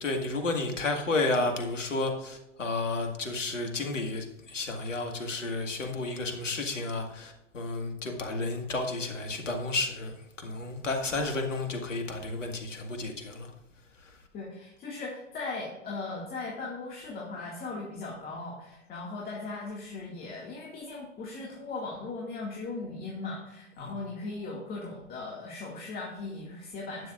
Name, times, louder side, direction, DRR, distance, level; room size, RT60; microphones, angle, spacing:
voice 1, 0.0-10.1 10.4-13.5 23.8-23.9, left 2 dB, 80° left, 3 dB, 2.0 m, -32 dB
voice 2, 14.3-27.1, left 3 dB, 25° left, -3 dB, 2.2 m, -38 dB
12.0 x 9.5 x 2.5 m, 0.92 s
figure-of-eight pair, 105°, 37 cm